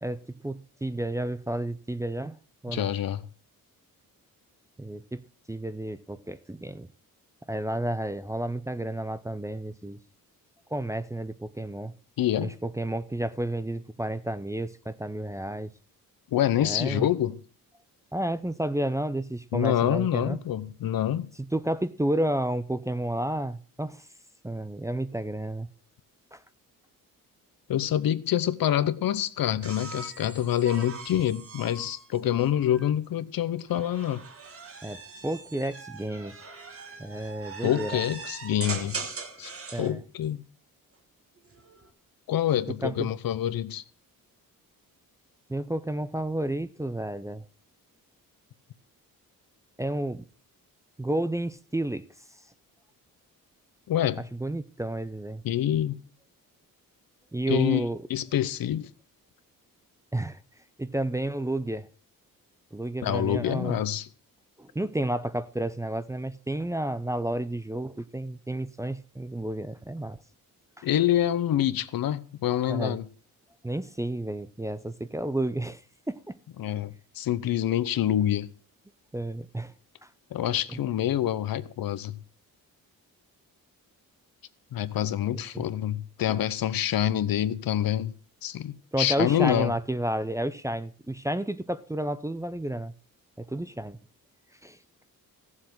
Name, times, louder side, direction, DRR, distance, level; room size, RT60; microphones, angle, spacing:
voice 1, 0.0-2.9 4.8-5.2 5.5-6.9 7.5-10.0 10.7-11.9 12.4-15.7 16.6-17.1 18.1-20.4 21.4-24.0 24.4-25.7 26.3-26.4 34.8-36.4 37.0-38.0 39.7-40.0 42.8-43.1 45.5-47.4 49.8-50.2 51.0-52.0 54.3-55.4 57.3-58.0 60.1-60.4 60.8-61.9 62.7-63.8 64.6-70.2 70.8-70.9 72.7-73.0 73.6-75.8 76.1-76.4 79.1-79.7 80.7-80.8 85.5-85.6 88.9-92.9 93.4-94.0 94.6-94.8, right 1 dB, 10° right, 0.5 m, -31 dB
voice 2, 2.7-3.2 12.2-12.5 16.3-17.4 19.5-21.3 27.7-34.2 37.6-39.0 39.4-39.5 39.8-40.4 42.3-43.8 53.9-54.3 55.4-56.0 57.5-57.8 58.1-58.9 63.0-64.1 70.8-73.0 76.6-78.5 80.3-82.2 84.7-88.1 88.4-89.7, left 11 dB, 75° left, 0.9 m, -26 dB
sound 1, 29.6-32.9 33.7-39.9 41.4-41.9, right 4 dB, 40° right, 1.8 m, -41 dB
15.0 x 7.4 x 6.1 m
cardioid pair, 105°, 36 cm